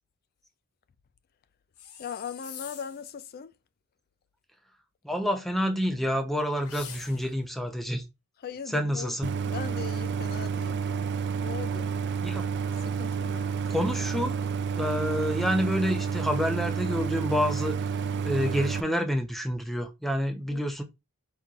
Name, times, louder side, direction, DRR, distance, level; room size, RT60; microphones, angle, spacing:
sound 1, 1.7-3.1 6.6-7.5, left 8 dB, 70° left, 0.7 m, -44 dB
voice 1, 2.0-3.5 8.4-9.2 9.4-10.8 11.4-11.9 12.8-13.5 20.5-20.6, left 7 dB, 45° left, 0.4 m, -39 dB
voice 2, 5.0-8.0 8.7-9.3 12.2-12.5 13.7-14.4 14.8-17.8 18.2-20.8, equal, ahead, 0.6 m, -28 dB
Idling, 9.2-18.8, right 6 dB, 50° right, 0.4 m, -30 dB
4.5 x 4.2 x 2.4 m
head